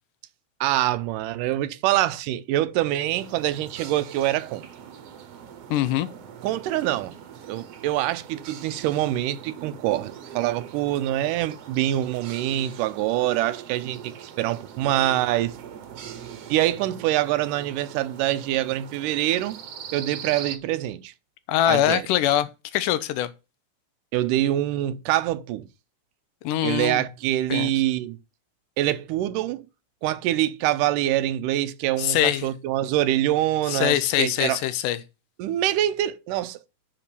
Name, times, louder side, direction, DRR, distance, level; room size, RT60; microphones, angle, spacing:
voice 1, 0.6-4.7 6.4-7.1 7.5-15.6 16.5-19.6 19.9-21.1 21.7-22.1 24.1-25.7 26.6-28.2 28.8-29.6 30.0-34.6 35.4-36.6, right 14 dB, 85° right, 2.2 m, -25 dB
sound 1, 3.2-20.6, right 8 dB, 65° right, 1.7 m, -42 dB
voice 2, 5.7-6.1 21.5-23.3 26.4-27.0 27.5-27.7 32.0-32.5 33.7-35.0, left 12 dB, 80° left, 2.3 m, -23 dB
8.9 x 4.2 x 6.8 m
omnidirectional pair, 3.8 m